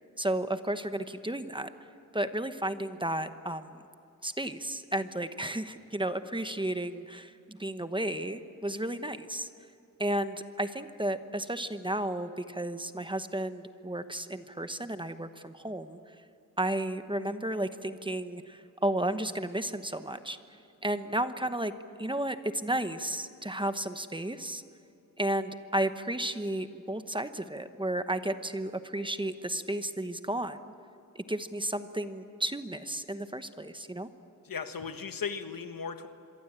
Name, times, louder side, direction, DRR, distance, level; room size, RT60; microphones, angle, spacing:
voice 1, 0.2-1.7 2.1-3.8 4.2-9.5 10.0-16.0 16.6-20.4 20.8-21.7 22.0-24.6 25.2-30.7 31.1-34.1, right 1 dB, 15° right, 10 dB, 1.0 m, -33 dB
voice 2, 34.4-36.1, left 6 dB, 80° left, 8 dB, 1.5 m, -36 dB
27.0 x 23.0 x 8.9 m, 2.6 s
wide cardioid pair, 125°, 34 cm